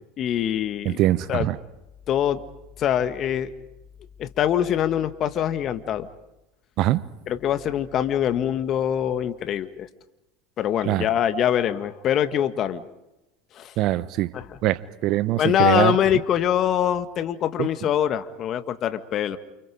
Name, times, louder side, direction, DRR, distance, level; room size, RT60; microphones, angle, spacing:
voice 1, 0.2-1.0 1.3-1.5 2.1-2.4 2.8-3.5 4.2-6.1 7.3-9.9 10.6-12.8 13.5-13.7 14.3-14.6 15.4-19.4, left 10 dB, 45° left, 10 dB, 1.8 m, -24 dB
voice 2, 0.8-1.6 6.8-7.0 10.9-11.0 13.8-14.3 14.6-16.0 17.6-17.7, right 15 dB, 55° right, 16 dB, 1.1 m, -22 dB
29.5 x 29.0 x 5.0 m, 0.95 s
hypercardioid pair, 80°, 0 cm